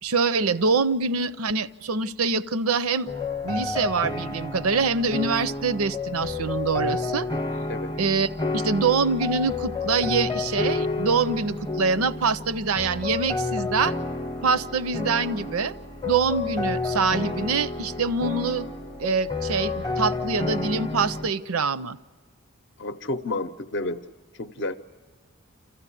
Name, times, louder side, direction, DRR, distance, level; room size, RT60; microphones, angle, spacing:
voice 1, 0.0-3.1 3.4-7.3 8.0-8.3 8.5-14.0 14.4-15.7 16.0-18.7 19.0-22.0, right 4 dB, 90° right, 16 dB, 0.6 m, -25 dB
sound 1, 3.1-21.3, left 3 dB, 20° left, 0.7 m, -30 dB
voice 2, 22.8-24.1 24.3-24.8, left 2 dB, 55° left, 10 dB, 0.6 m, -30 dB
28.0 x 14.5 x 9.9 m, 1.5 s
head